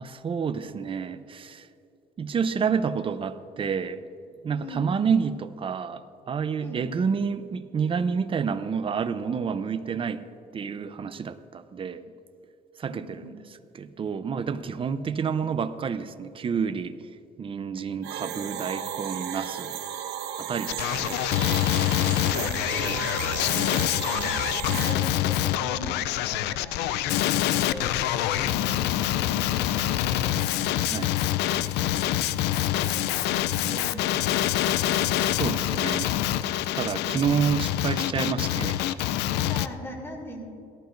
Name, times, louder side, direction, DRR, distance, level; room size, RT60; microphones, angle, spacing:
voice 1, 0.0-1.7 2.2-4.0 4.4-10.2 10.5-12.0 12.8-13.4 13.7-17.1 17.4-19.8 20.4-21.2 30.9-31.1 35.4-36.1 36.7-38.8, right 6 dB, 30° right, 12 dB, 0.6 m, -29 dB
voice 2, 4.5-4.9 6.6-6.8 12.9-13.4 21.4-23.7 24.0-24.4 24.7-26.0 26.3-28.0 28.3-29.0 29.3-31.6 31.9-35.1 37.0-37.3 39.3-40.4, equal, 15° left, -1 dB, 2.9 m, -41 dB
sound 1, 18.0-24.9, right 9 dB, 85° right, 0.9 m, -34 dB
Male speech man speaking, 20.7-39.7, left 13 dB, 85° left, 0.4 m, -26 dB
18.0 x 14.0 x 2.6 m, 2.7 s
cardioid pair, 110°, 17 cm